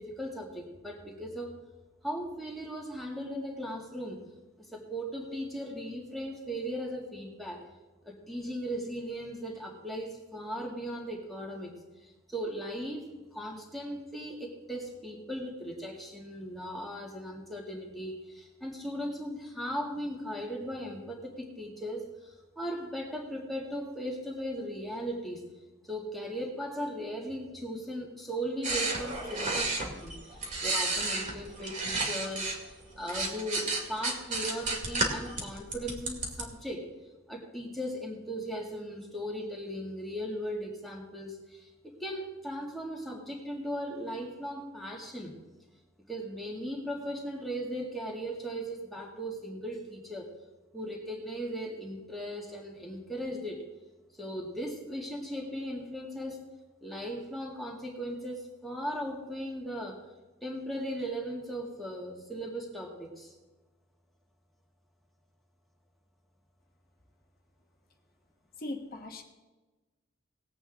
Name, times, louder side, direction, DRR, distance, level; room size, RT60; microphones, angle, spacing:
voice 1, 0.0-1.5 2.0-4.3 4.6-7.6 8.0-11.8 12.0-25.5 25.8-36.9 37.3-41.7 42.0-45.3 46.1-50.3 50.7-53.6 54.2-56.4 56.8-60.0 60.4-63.3, equal, ahead, -2 dB, 2.1 m, -38 dB
sound 1, 28.6-32.6 32.9-36.4, right 3 dB, 40° right, 2.2 m, -32 dB
voice 2, 68.6-69.2, left 2 dB, 45° left, 3 dB, 1.3 m, -38 dB
19.5 x 8.1 x 3.7 m, 1.2 s
head